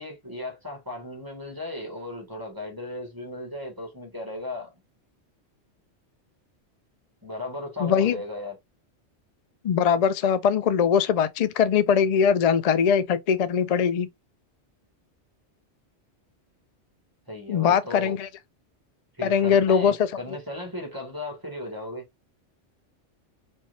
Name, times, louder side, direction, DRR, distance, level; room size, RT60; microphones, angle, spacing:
voice 1, 0.0-4.7 7.2-8.6 17.3-18.2 19.2-22.1, left 1 dB, 15° right, 1.9 m, -36 dB
voice 2, 7.8-8.2 9.6-14.1 17.5-18.3 19.2-20.1, left 7 dB, 65° left, 0.3 m, -21 dB
4.3 x 3.4 x 2.7 m
omnidirectional pair, 1.2 m